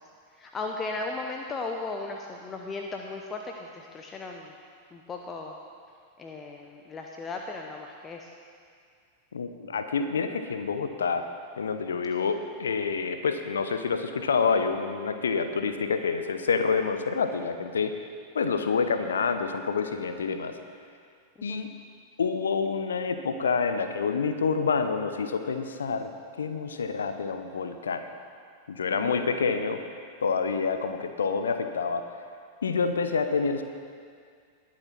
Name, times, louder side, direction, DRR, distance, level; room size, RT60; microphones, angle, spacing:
voice 1, 0.4-4.5 4.9-5.5 6.2-8.3 21.4-21.7 28.9-29.4, left 3 dB, 20° left, 2 dB, 0.8 m, -36 dB
voice 2, 9.3-11.3 11.6-17.9 18.3-20.5 21.4-21.7 22.2-26.1 26.4-28.0 28.7-29.8 30.2-32.0 32.6-33.6, left 5 dB, 70° left, 8 dB, 0.8 m, -27 dB
20.5 x 7.5 x 4.4 m, 2.2 s
figure-of-eight pair, 90°, 0 cm